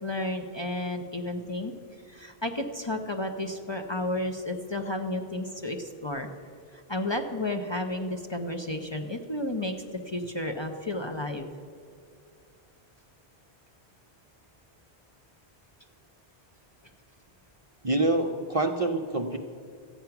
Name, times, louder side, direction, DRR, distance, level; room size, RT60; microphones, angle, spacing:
voice 1, 0.0-1.7 2.1-6.3 6.7-11.5, left 1 dB, 30° left, 4 dB, 0.6 m, -32 dB
voice 2, 17.8-19.4, right 2 dB, 40° right, 4 dB, 0.6 m, -26 dB
14.0 x 9.2 x 5.9 m, 2.4 s
omnidirectional pair, 1.1 m